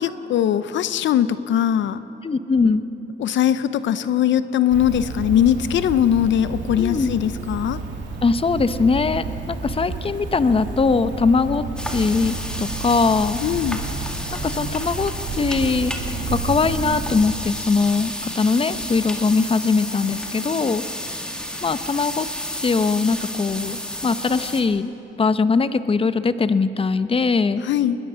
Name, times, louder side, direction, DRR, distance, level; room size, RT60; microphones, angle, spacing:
voice 1, 0.0-2.0 3.2-7.8 13.4-13.8 27.6-28.0, left 10 dB, 70° left, 14 dB, 0.6 m, -20 dB
voice 2, 2.2-2.8 6.8-7.1 8.2-13.4 14.4-15.9 16.3-20.8 21.6-22.3 22.6-24.9 25.2-27.6, left 4 dB, 30° left, 12 dB, 0.9 m, -21 dB
Cricket, 4.7-17.2, right 4 dB, 70° right, 2.9 m, -31 dB
sound 1, 11.8-24.6, equal, 5° left, 2.2 m, -31 dB
21.0 x 20.0 x 6.3 m, 2.9 s
cardioid pair, 90°, 20 cm